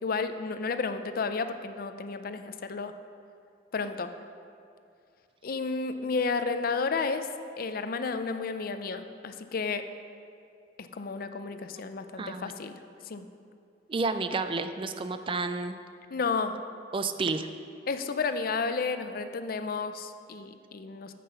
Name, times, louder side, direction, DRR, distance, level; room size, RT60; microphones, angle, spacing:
voice 1, 0.0-2.9 3.7-4.1 5.4-7.3 7.6-9.9 10.8-13.3 16.1-16.6 17.9-21.1, left 4 dB, 50° left, 9 dB, 0.5 m, -32 dB
voice 2, 12.2-12.5 13.9-15.8 16.9-17.5, right 3 dB, 30° right, 9 dB, 0.4 m, -31 dB
9.1 x 7.6 x 5.5 m, 2.6 s
head